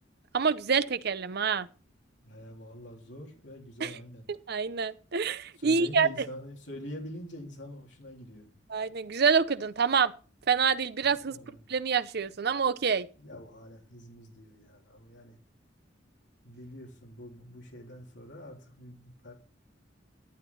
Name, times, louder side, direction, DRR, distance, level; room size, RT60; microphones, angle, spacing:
voice 1, 0.3-1.7 3.8-3.9 4.5-6.1 8.7-10.1 10.5-11.3 11.7-13.1, right 6 dB, 60° right, 0.7 m, -26 dB
voice 2, 2.2-4.3 5.6-8.5 11.3-11.7 13.2-15.4 16.4-19.3, equal, 70° left, 3.5 m, -45 dB
12.0 x 9.1 x 4.0 m
head